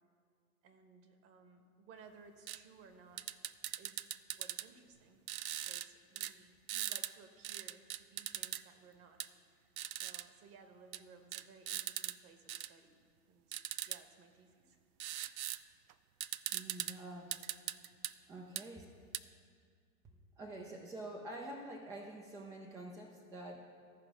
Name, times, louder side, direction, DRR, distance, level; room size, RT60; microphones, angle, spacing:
voice 1, 0.6-3.4 3.8-5.2 5.5-9.2 9.5-13.0 13.3-13.6 13.9-14.8, right 5 dB, 30° right, 6 dB, 1.2 m, -60 dB
sound 1, 2.5-2.6 3.2-4.7 5.3-5.9 6.2-6.3 6.7-7.1 7.4-8.6 9.2-9.3 9.8-10.2 10.9-11.0 11.3-12.1 12.5-12.7 13.5-14.0 15.0-15.6 15.9-16.0 16.2-16.9 17.3-18.1 18.6-18.7 19.1-19.2, right 12 dB, 75° right, 0.5 m, -40 dB
voice 2, 16.5-17.4 18.3-18.8 20.4-23.6, right 1 dB, 10° right, 0 dB, 0.4 m, -47 dB
13.5 x 4.8 x 6.1 m, 2.1 s
hypercardioid pair, 105°, 44 cm